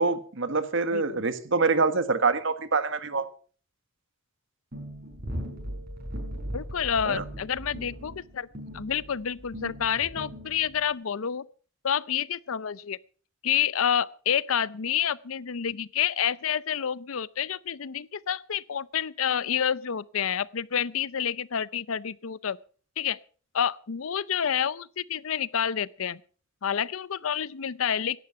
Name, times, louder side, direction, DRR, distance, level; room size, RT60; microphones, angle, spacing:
voice 1, 0.0-3.2 7.0-7.2, right 4 dB, 65° right, 1.5 m, -25 dB
voice 2, 0.9-1.2 6.5-8.5 8.7-11.4 11.8-13.0 13.4-22.6 23.0-23.2 23.5-26.2 26.6-28.2, left 8 dB, 80° left, 0.6 m, -28 dB
sound 1, 4.7-10.9, equal, 45° right, 5.4 m, -38 dB
17.5 x 11.0 x 5.6 m
head